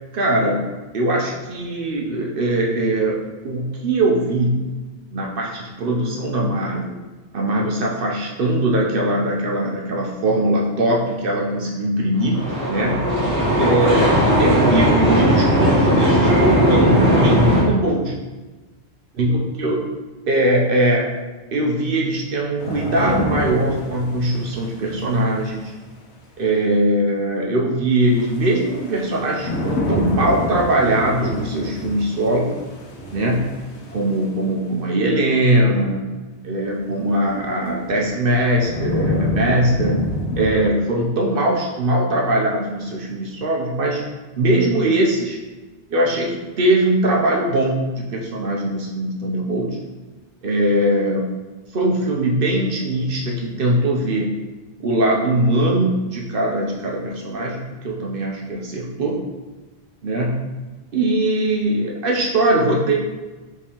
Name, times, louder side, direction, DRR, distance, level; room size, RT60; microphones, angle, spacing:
voice 1, 0.1-0.6 0.9-3.2 3.4-4.7 5.1-7.0 7.3-13.0 13.6-14.1 14.4-18.1 19.2-19.9 20.3-21.1 21.5-25.7 26.4-32.5 33.1-33.5 33.9-36.0 36.4-40.0 40.4-44.0 44.4-45.4 45.9-49.8 50.4-51.4 51.7-54.4 54.8-59.2 60.0-60.5 60.9-62.9, right 1 dB, 60° right, -2 dB, 0.8 m, -21 dB
sound 1, 12.2-17.6, equal, 35° right, 1.6 m, -17 dB
sound 2, 22.6-25.7 28.1-34.4 37.0-37.1 37.7-40.5, left 1 dB, 85° left, 1.2 m, -27 dB
5.1 x 3.5 x 2.9 m, 1.2 s
omnidirectional pair, 1.1 m